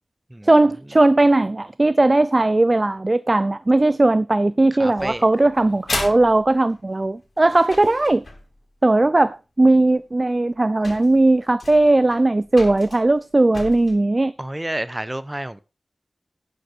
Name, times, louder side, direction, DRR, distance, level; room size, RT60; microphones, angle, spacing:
voice 1, 0.4-8.2 8.8-14.3, right 2 dB, 35° right, 0.5 m, -18 dB
voice 2, 4.8-5.2 14.4-15.6, right 1 dB, 20° right, 0.9 m, -29 dB
sound 1, 5.0-8.6 9.9-10.0 10.5-10.6 10.8-14.0, left 2 dB, 65° left, 4.8 m, -34 dB
11.5 x 10.0 x 4.5 m
cardioid pair, 50°, 0 cm